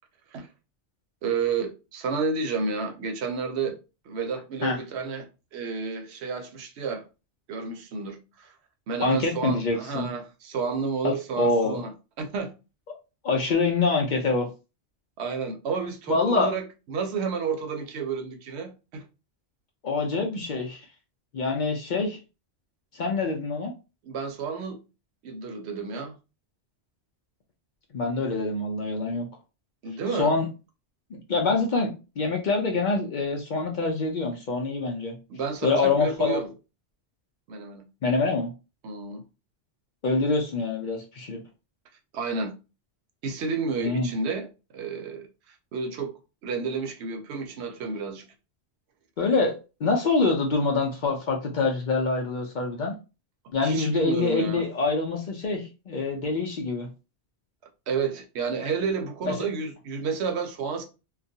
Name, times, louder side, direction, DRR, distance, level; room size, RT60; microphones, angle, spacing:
voice 1, 1.2-3.8 4.1-7.0 7.5-8.5 8.9-11.9 12.2-12.5 15.2-19.0 24.0-24.8 25.2-26.2 29.8-30.3 35.3-36.5 37.5-37.8 38.8-39.2 42.1-42.5 43.2-44.5 44.7-45.3 45.7-46.1 46.4-48.2 53.6-54.6 57.9-60.8, right 5 dB, 80° right, 0.9 m, -31 dB
voice 2, 9.0-10.1 11.0-11.8 13.2-14.5 16.1-16.5 19.8-20.9 21.3-22.2 22.9-23.7 27.9-29.3 30.1-30.5 31.1-35.2 35.6-36.4 38.0-38.5 40.0-41.4 43.8-44.1 49.2-49.5 49.8-52.9 53.5-56.9 59.2-59.3, left 3 dB, 55° left, 0.5 m, -25 dB
2.3 x 2.1 x 2.6 m
omnidirectional pair, 1.1 m